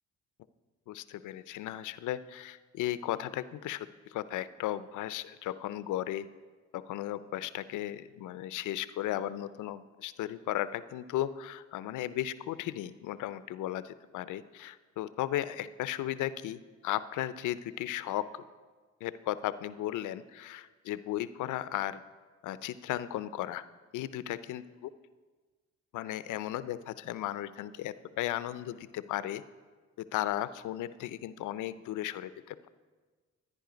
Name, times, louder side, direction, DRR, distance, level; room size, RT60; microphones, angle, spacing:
voice 1, 0.9-6.3 6.7-18.4 19.0-22.0 22.4-23.6 23.9-24.7 25.9-29.4 30.0-32.7, left 13 dB, 80° left, 15 dB, 0.6 m, -35 dB
13.0 x 9.9 x 5.1 m, 1.4 s
cardioid pair, 90°, 30 cm